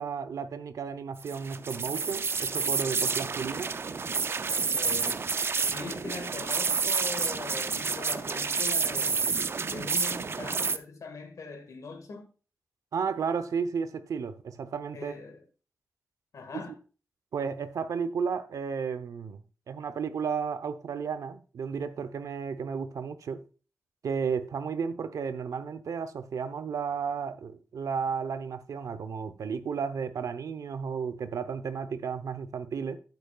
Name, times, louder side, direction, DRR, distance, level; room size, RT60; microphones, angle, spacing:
voice 1, 0.0-3.7 12.9-15.1 17.3-19.4 19.7-23.4 24.0-33.0, right 6 dB, 90° right, 0.7 m, -33 dB
sound 1, 1.2-10.8, right 5 dB, 45° right, 0.5 m, -29 dB
voice 2, 4.7-9.2 9.7-12.3 14.9-15.4 16.3-16.7, left 4 dB, 75° left, 1.7 m, -41 dB
10.5 x 8.0 x 2.4 m
wide cardioid pair, 120°, 6 cm